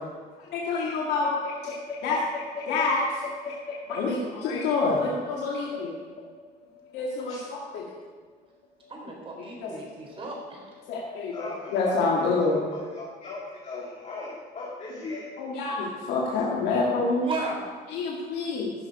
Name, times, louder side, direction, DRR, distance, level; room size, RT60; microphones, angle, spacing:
voice 1, 0.4-1.3 1.6-1.8 2.0-2.2 2.6-3.2 3.5-3.6 3.9-6.0 6.6-7.9 8.8-8.9 9.4-9.7 10.1-10.2 10.9-12.6 15.1-17.3 17.9-18.7, left 3 dB, 90° left, -3 dB, 1.9 m, -27 dB
voice 2, 8.9-10.6 17.2-17.6, right 3 dB, 35° right, -1 dB, 3.9 m, -34 dB
voice 3, 11.3-15.3, left 2 dB, 40° left, -5 dB, 2.2 m, -38 dB
15.0 x 6.5 x 5.3 m, 1.5 s
cardioid pair, 110°, 17 cm